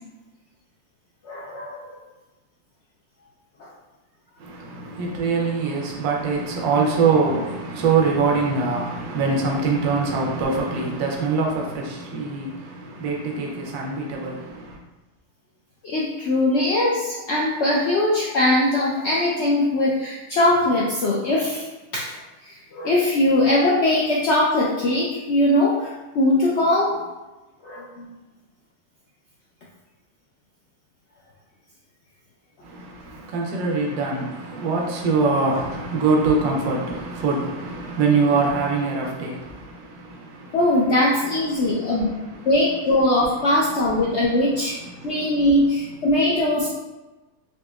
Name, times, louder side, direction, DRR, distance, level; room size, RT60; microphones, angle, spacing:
voice 1, 1.2-2.0 3.6-3.7 15.8-21.7 21.9-22.1 22.4-27.0 27.6-28.1 40.5-42.1 42.5-44.7 45.0-46.7, left 1 dB, 75° left, -4 dB, 0.6 m, -21 dB
voice 2, 4.4-14.8 32.6-40.6 41.5-42.4 44.8-45.5, right 4 dB, 70° right, -1 dB, 1.1 m, -24 dB
4.1 x 2.6 x 2.3 m, 1.1 s
omnidirectional pair, 1.7 m